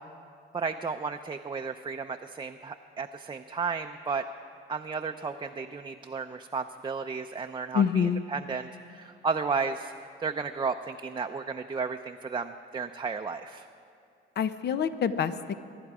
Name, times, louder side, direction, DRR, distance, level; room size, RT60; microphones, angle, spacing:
voice 1, 0.5-4.2 4.7-9.9 10.2-13.7, right 5 dB, 25° right, 4 dB, 0.5 m, -33 dB
voice 2, 7.7-8.2 14.4-15.5, left 7 dB, 60° left, 12 dB, 0.8 m, -26 dB
24.0 x 11.0 x 4.9 m, 2.6 s
cardioid pair, 90°, 20 cm